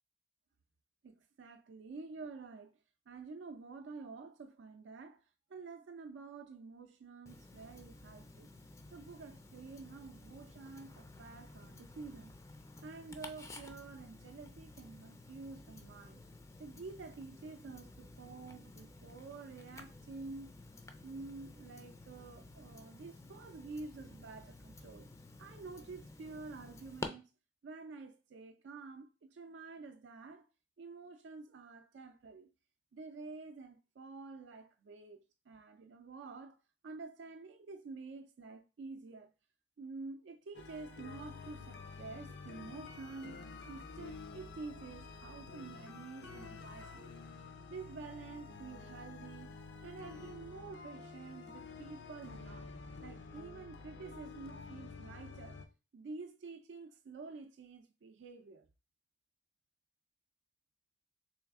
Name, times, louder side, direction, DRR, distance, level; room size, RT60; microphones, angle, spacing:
voice 1, 1.0-2.8 3.1-5.2 5.5-8.5 8.9-12.3 12.8-16.2 16.6-20.5 21.0-25.1 25.4-27.3 27.6-30.5 30.8-32.5 32.9-36.6 36.8-39.3 39.8-47.1 47.7-52.7 53.0-55.6 55.9-58.7, right 4 dB, 85° right, 0.4 m, -49 dB
Tick-tock, 7.3-27.1, left 2 dB, 15° left, 0.3 m, -52 dB
sound 1, 40.5-55.7, left 4 dB, 70° left, 0.5 m, -50 dB
3.2 x 3.1 x 3.5 m
head